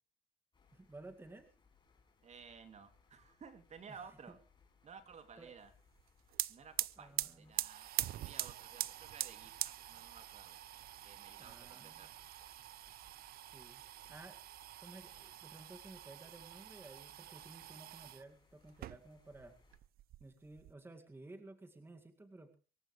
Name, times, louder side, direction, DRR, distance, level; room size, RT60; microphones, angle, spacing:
sound 1, 0.5-19.8, left 5 dB, 30° left, 5.7 m, -70 dB
voice 1, 0.7-1.5 3.9-4.0 4.3-4.4 5.4-5.5 7.0-7.6 11.4-12.1 13.5-13.8 14.1-14.4 14.8-19.6 20.2-22.6, right 2 dB, 15° right, 6 dB, 2.0 m, -55 dB
voice 2, 2.2-4.4 4.8-5.7 6.5-7.9 8.2-10.6 11.0-12.1, right 6 dB, 40° right, 9 dB, 2.7 m, -55 dB
sound 2, 6.0-6.1 6.3-18.2 18.7-19.5 19.7-20.7, right 14 dB, 60° right, 0.7 m, -44 dB
24.5 x 14.5 x 3.2 m, 0.34 s
cardioid pair, 110°, 17 cm